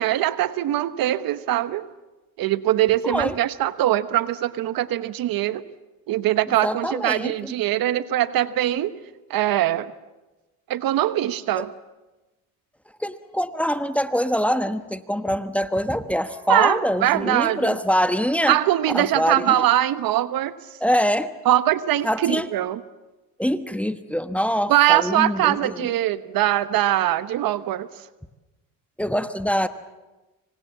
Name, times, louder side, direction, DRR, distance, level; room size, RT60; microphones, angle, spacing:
voice 1, 0.0-1.8 2.4-5.6 6.1-8.9 9.3-9.9 10.7-11.7 16.5-17.8 18.5-20.5 21.4-22.8 24.7-27.9, right 13 dB, 65° right, 14 dB, 1.2 m, -22 dB
voice 2, 3.0-3.4 6.5-7.5 11.5-11.6 13.0-18.6 18.9-19.6 20.8-21.3 22.0-22.5 23.4-25.9 29.0-29.7, equal, 5° left, 10 dB, 1.2 m, -24 dB
25.5 x 25.0 x 7.4 m, 1.1 s
cardioid pair, 90°, 37 cm